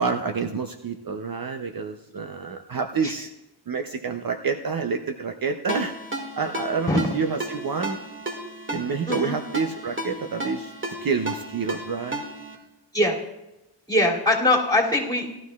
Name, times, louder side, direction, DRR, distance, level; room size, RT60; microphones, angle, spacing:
voice 1, 0.0-3.3 3.7-5.9 6.4-8.0 8.7-10.7 11.0-12.2, right 5 dB, 50° right, 5 dB, 0.7 m, -28 dB
Ringtone, 5.7-12.5, right 1 dB, 25° right, 1.9 m, -34 dB
voice 2, 13.9-15.3, left 1 dB, 10° left, -4 dB, 2.7 m, -21 dB
18.0 x 12.5 x 2.4 m, 0.93 s
wide cardioid pair, 105°, 45 cm